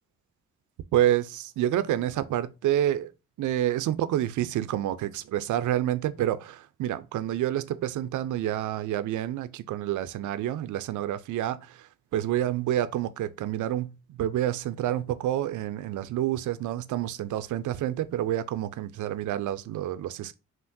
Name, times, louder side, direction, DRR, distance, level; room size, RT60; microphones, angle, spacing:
voice 1, 0.9-3.1 3.4-20.4, right 12 dB, 75° right, 0.5 m, -28 dB
5.8 x 2.5 x 2.6 m
cardioid pair, 75°, 31 cm